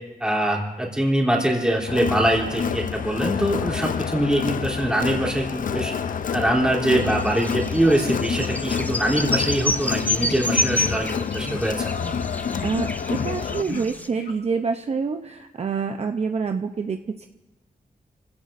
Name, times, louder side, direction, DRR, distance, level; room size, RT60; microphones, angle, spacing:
voice 1, 0.2-5.9 6.3-11.8, right 1 dB, 5° right, -3 dB, 3.1 m, -23 dB
Crowd, 1.9-13.6, left 7 dB, 60° left, 0.5 m, -28 dB
sound 1, 7.0-14.1, left 1 dB, 10° left, 0.6 m, -29 dB
sound 2, 8.0-8.1 8.4-8.7 9.1-9.2 9.6-9.7 10.2-10.4 10.8-11.0 11.4-11.6 12.0-12.2 12.5-12.7 13.0-13.3 13.6-13.8 14.1-14.3, left 3 dB, 80° left, 1.9 m, -35 dB
voice 2, 12.3-17.3, right 5 dB, 45° right, 5 dB, 0.6 m, -27 dB
30.0 x 17.0 x 2.6 m, 1.1 s
wide cardioid pair, 145°, 15 cm